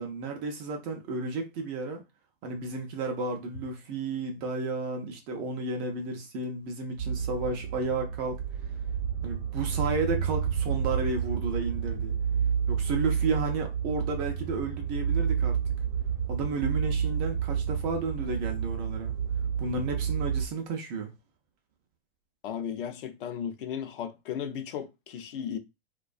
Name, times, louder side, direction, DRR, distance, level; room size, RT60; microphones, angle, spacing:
voice 1, 0.0-2.0 2.4-8.4 9.2-12.1 12.7-15.6 16.3-19.2 19.6-21.1, right 3 dB, 25° right, 0.3 m, -32 dB
sound 1, 7.0-20.5, right 7 dB, 45° right, 0.8 m, -30 dB
voice 2, 22.4-25.6, left 8 dB, 60° left, 0.5 m, -35 dB
2.3 x 2.2 x 2.4 m
hypercardioid pair, 130°, 31 cm